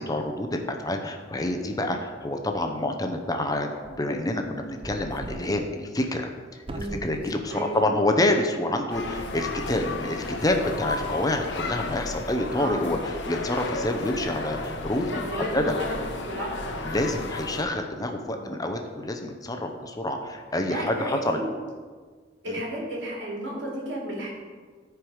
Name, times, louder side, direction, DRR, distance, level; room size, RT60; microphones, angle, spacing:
voice 1, 0.0-6.3 7.0-15.7 16.8-21.4 22.5-22.6, left 1 dB, 20° left, 4 dB, 0.8 m, -27 dB
sound 1, 3.8-4.0 4.6-5.6 6.0-6.1 6.6-7.6 7.9-8.0 8.7-9.0 9.3-9.6, right 1 dB, 30° right, 0.5 m, -39 dB
voice 2, 6.7-7.0 7.5-7.8 12.5-12.9 15.0-16.8 18.3-18.5 20.6-21.5 22.4-24.3, right 1 dB, 85° right, -3 dB, 2.9 m, -33 dB
sound 2, 8.9-17.6, left 3 dB, 80° left, 0.9 m, -33 dB
13.5 x 4.7 x 4.9 m, 1.5 s
head